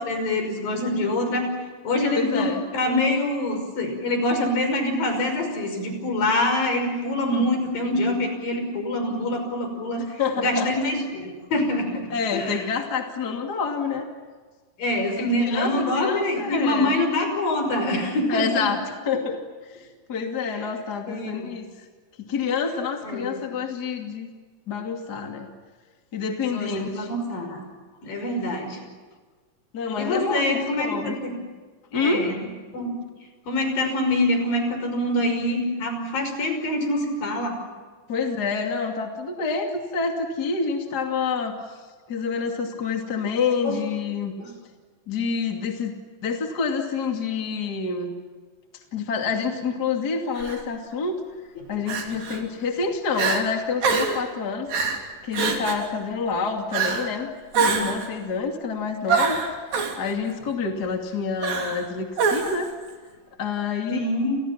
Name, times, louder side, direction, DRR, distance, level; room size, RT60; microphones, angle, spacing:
voice 1, 0.0-1.5 1.8-2.5 2.7-12.7 14.8-18.7 20.5-20.6 21.1-21.5 23.0-23.4 26.5-27.6 28.0-28.8 30.0-31.3 31.9-32.4 32.7-33.0 33.5-37.6 43.6-43.8 44.4-44.5 51.8-51.9 63.9-64.4, left 1 dB, 80° left, 5 dB, 7.5 m, -25 dB
voice 2, 2.2-2.6 7.3-7.5 10.0-10.7 12.1-14.1 15.2-17.0 18.3-21.8 22.3-24.3 24.7-25.5 26.1-27.1 29.7-31.2 31.9-32.3 38.1-41.8 42.1-44.3 45.1-45.9 46.2-48.1 48.9-51.2 51.7-54.7 55.2-59.4 60.0-62.7 63.4-64.0, left 5 dB, 30° left, 3 dB, 2.8 m, -27 dB
Crying sobbing, 50.4-50.6 51.9-52.4 52.8-52.9 53.1-53.4 53.8-54.2 54.7-55.0 55.3-55.9 56.7-57.1 57.5-58.1 59.1-60.0 61.4-61.8 62.2-62.7, right 5 dB, 85° right, 5.0 m, -24 dB
30.0 x 30.0 x 5.9 m, 1.4 s
omnidirectional pair, 4.0 m